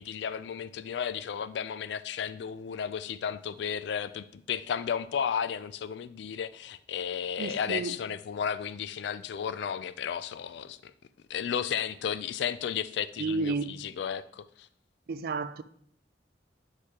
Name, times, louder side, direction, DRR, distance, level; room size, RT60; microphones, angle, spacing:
voice 1, 0.0-10.9 11.3-14.7, left 8 dB, 65° left, 0.3 m, -33 dB
voice 2, 7.4-8.0 13.2-13.7 15.1-15.6, right 3 dB, 55° right, 0.4 m, -31 dB
8.3 x 4.8 x 2.9 m
head